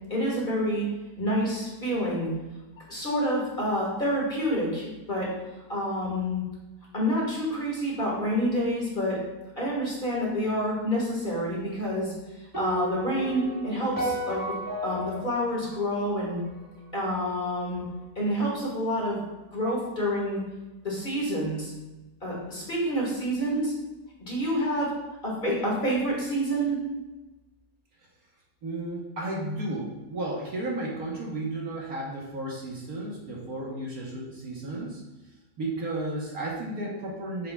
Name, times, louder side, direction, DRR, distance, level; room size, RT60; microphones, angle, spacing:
voice 1, 0.1-0.8 1.2-2.3 2.9-5.3 5.7-6.4 6.9-9.2 9.5-12.1 12.5-14.4 14.8-16.4 16.9-17.8 18.1-19.2 19.5-20.4 20.8-21.7 22.2-23.7 24.2-24.9 25.2-26.8, equal, 30° left, -4 dB, 1.7 m, -28 dB
sound 1, 12.5-16.8, equal, 10° right, 1.2 m, -34 dB
voice 2, 28.6-35.0 35.6-37.5, right 2 dB, 55° right, -3 dB, 1.5 m, -33 dB
7.0 x 6.6 x 2.3 m, 1.1 s
omnidirectional pair, 1.9 m